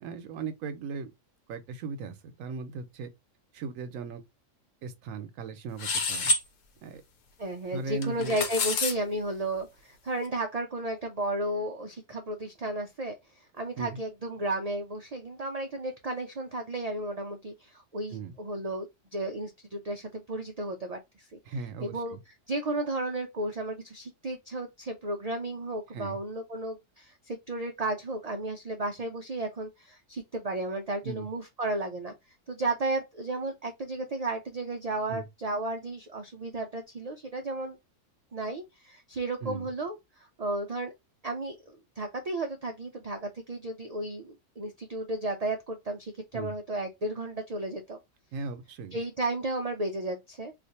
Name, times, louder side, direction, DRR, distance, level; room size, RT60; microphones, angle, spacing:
voice 1, 0.0-1.1 1.5-3.1 3.5-4.2 4.8-6.3 6.8-7.0 7.7-8.4 13.8-14.0 18.1-18.3 21.5-22.2 25.9-26.2 31.0-31.3 35.1-35.2 39.4-39.7 46.3-46.5 48.3-49.0, right 4 dB, 90° right, 1.0 m, -38 dB
sound 1, 5.8-6.4 8.0-8.9, left 3 dB, 75° left, 1.1 m, -27 dB
voice 2, 7.4-21.4 21.8-22.2 22.5-32.1 32.5-37.8 38.3-40.9 41.2-48.0 48.9-50.5, right 2 dB, 65° right, 0.3 m, -33 dB
2.5 x 2.4 x 4.0 m
omnidirectional pair, 1.4 m